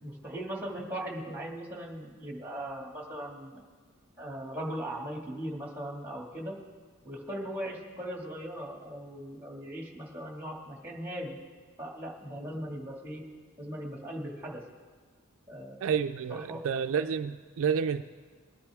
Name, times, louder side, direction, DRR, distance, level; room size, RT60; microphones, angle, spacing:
voice 1, 0.0-3.6 4.2-6.6 7.0-11.4 11.8-13.2 13.6-14.6 15.5-15.8 16.3-16.6, right 1 dB, 10° right, -1 dB, 2.1 m, -39 dB
voice 2, 15.8-18.0, right 7 dB, 65° right, 9 dB, 0.4 m, -29 dB
21.5 x 10.0 x 3.5 m, 1.5 s
head